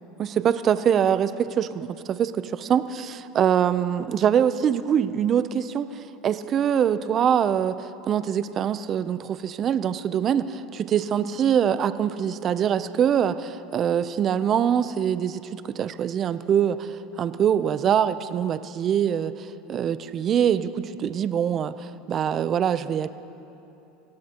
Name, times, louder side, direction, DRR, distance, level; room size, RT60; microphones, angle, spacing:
voice 1, 0.2-23.1, right 8 dB, 40° right, 13 dB, 0.6 m, -24 dB
25.0 x 17.0 x 3.0 m, 2.9 s
supercardioid pair, 115°, 0 cm